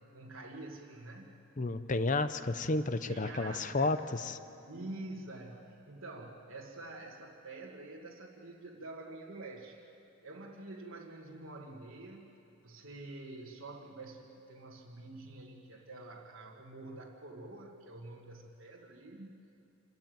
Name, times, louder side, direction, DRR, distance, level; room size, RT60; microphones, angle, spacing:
voice 1, 0.0-1.4 2.8-4.0 4.7-9.8 10.2-12.3 12.6-19.4, right 2 dB, 60° right, -3 dB, 1.7 m, -47 dB
voice 2, 1.6-4.4, left 2 dB, 35° left, 12 dB, 0.7 m, -31 dB
27.0 x 13.5 x 9.2 m, 2.9 s
head